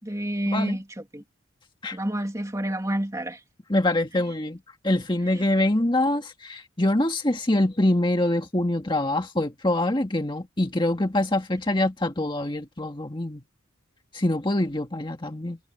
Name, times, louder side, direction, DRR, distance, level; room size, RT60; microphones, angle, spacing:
voice 1, 0.0-1.2 1.9-3.4 5.3-5.4, right 1 dB, 15° right, 2.5 m, -29 dB
voice 2, 3.7-4.6 4.8-13.4 14.1-15.6, left 1 dB, 25° left, 1.8 m, -24 dB
head